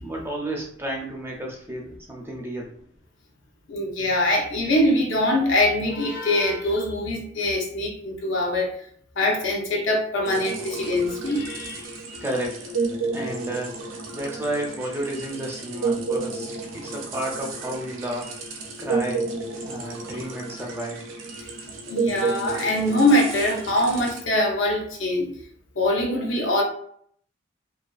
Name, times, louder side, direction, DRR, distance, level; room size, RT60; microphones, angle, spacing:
voice 1, 0.0-2.7 12.2-12.7 13.1-13.7 14.1-16.5 16.7-18.4 18.8-19.3 19.6-21.1, right 1 dB, 10° right, -1 dB, 0.4 m, -31 dB
voice 2, 3.7-8.7 9.2-11.9 21.9-25.3 25.8-26.6, left 1 dB, 75° left, 0 dB, 0.6 m, -23 dB
sound 1, 10.2-24.2, right 4 dB, 85° right, 0.5 m, -31 dB
2.4 x 2.2 x 2.3 m, 0.62 s
head